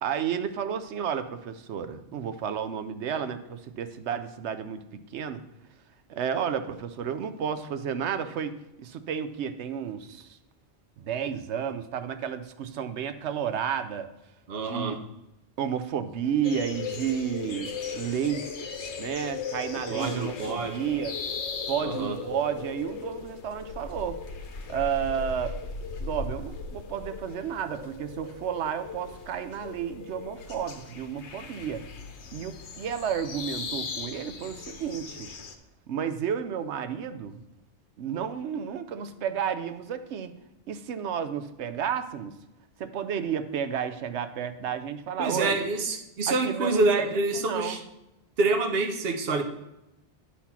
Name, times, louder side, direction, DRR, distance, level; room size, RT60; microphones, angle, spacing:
voice 1, 0.0-4.8 5.1-5.4 6.1-10.4 11.0-14.1 14.6-15.0 15.6-18.5 19.0-21.1 21.7-24.2 24.7-25.6 26.0-31.8 32.3-35.3 35.9-37.3 38.0-40.3 40.7-42.3 42.8-45.6 46.3-47.8, right 8 dB, 80° right, 10 dB, 0.9 m, -31 dB
voice 2, 14.5-15.0 19.9-20.8 21.8-22.2 45.2-47.8 48.4-49.4, right 3 dB, 60° right, 5 dB, 1.1 m, -27 dB
sound 1, 16.4-35.6, left 4 dB, 85° left, 1.2 m, -38 dB
10.0 x 4.3 x 5.7 m, 0.92 s
omnidirectional pair, 1.1 m